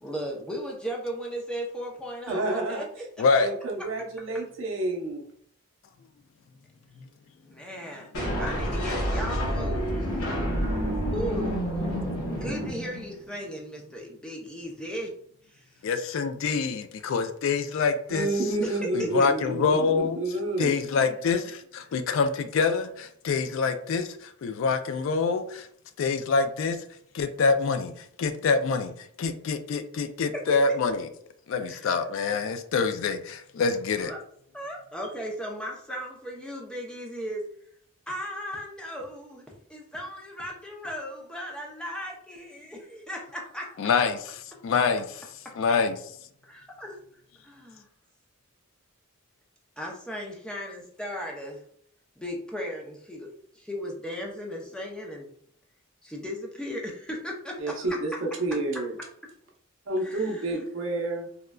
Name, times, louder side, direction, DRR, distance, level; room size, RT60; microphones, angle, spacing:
voice 1, 0.0-3.4 7.4-8.1 8.4-10.1 11.1-11.8 12.3-15.1 15.5-15.9 19.0-19.3 30.5-30.6 31.7-31.9 34.0-34.2 34.5-37.4 38.1-39.4 39.7-43.8 46.8-47.0 47.4-47.9 49.8-51.6 52.2-55.3 56.0-58.0 60.0-60.6, equal, 5° left, -1 dB, 0.5 m, -36 dB
voice 2, 2.3-2.8 3.4-5.2 18.1-20.7 57.6-58.9 59.9-61.3, right 2 dB, 65° right, 1 dB, 0.6 m, -29 dB
voice 3, 3.2-3.5 11.9-12.0 15.8-18.3 18.9-20.2 20.6-25.7 26.0-26.8 27.1-27.9 28.2-28.9 29.2-31.1 31.5-34.1 43.8-44.2 44.6-45.1 45.6-46.0, left 4 dB, 65° left, 9 dB, 0.3 m, -25 dB
sound 1, 8.1-13.3, equal, 85° left, 0.8 m, -29 dB
3.6 x 2.1 x 2.2 m, 0.64 s
head